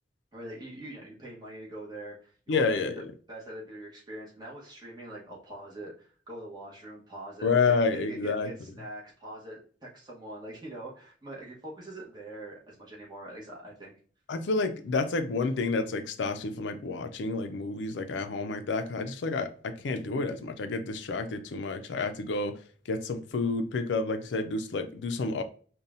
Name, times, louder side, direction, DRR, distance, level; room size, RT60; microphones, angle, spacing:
voice 1, 0.3-13.9, right 1 dB, 25° right, 1.1 m, -43 dB
voice 2, 2.5-3.0 7.4-8.5 14.3-22.5 22.9-25.4, left 3 dB, 80° left, 0.4 m, -29 dB
5.4 x 2.2 x 2.5 m
head